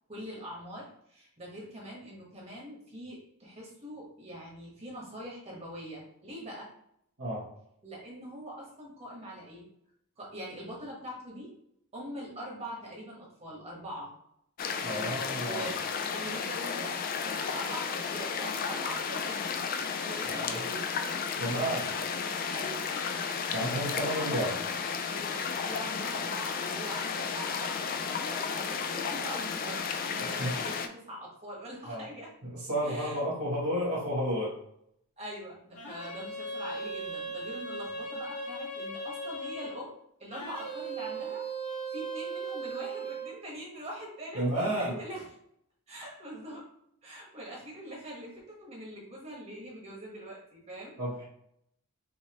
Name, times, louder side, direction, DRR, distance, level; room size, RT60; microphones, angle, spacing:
voice 1, 0.1-6.7 7.8-9.7 10.2-11.5 11.9-14.1 14.7-15.8 16.1-19.7 20.0-20.9 22.5-22.9 23.5-24.6 25.1-32.3 32.8-33.2 35.2-45.3 45.9-46.7 47.0-51.0, equal, 30° right, -3 dB, 1.4 m, -43 dB
sound 1, 14.6-30.9, left 6 dB, 40° left, 0.3 m, -33 dB
voice 2, 14.8-15.6 20.3-20.6 21.4-21.9 23.5-24.5 30.4-30.6 31.9-32.1 32.4-34.6 44.3-45.0 51.0-51.2, equal, 80° right, -7 dB, 1.7 m, -31 dB
sound 2, 35.7-39.8 40.3-43.3, right 3 dB, 80° left, 1.5 m, -38 dB
5.5 x 2.7 x 3.0 m, 0.74 s
head